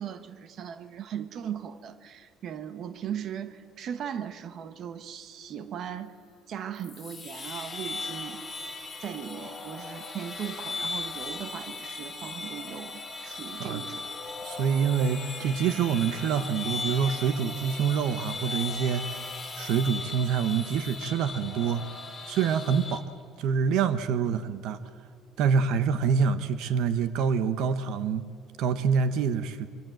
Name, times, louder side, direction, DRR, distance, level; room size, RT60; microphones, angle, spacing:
voice 1, 0.0-6.2 6.5-8.4 9.0-14.1 24.3-24.4, right 9 dB, 40° right, 11 dB, 1.2 m, -38 dB
sound 1, 6.7-23.0, left 4 dB, 5° left, 3.1 m, -38 dB
voice 2, 14.4-19.0 19.5-21.8 22.3-23.0 23.4-24.8 25.4-28.2 28.6-29.7, right 6 dB, 60° right, 12 dB, 1.0 m, -26 dB
25.0 x 24.5 x 7.9 m, 2.3 s
cardioid pair, 180°, 0 cm